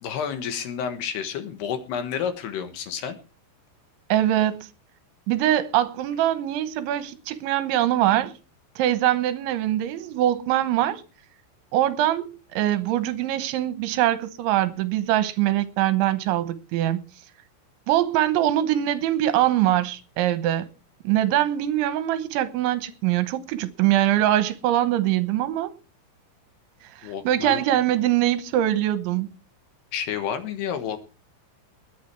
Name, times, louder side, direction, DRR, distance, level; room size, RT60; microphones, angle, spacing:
voice 1, 0.0-3.2 27.0-27.6 29.9-31.0, left 8 dB, 65° left, 3.2 m, -30 dB
voice 2, 4.1-4.7 5.3-8.3 8.8-11.0 11.7-17.0 17.9-20.7 21.0-25.7 27.0-29.3, right 13 dB, 80° right, 3.4 m, -23 dB
21.0 x 8.7 x 4.6 m
omnidirectional pair, 5.4 m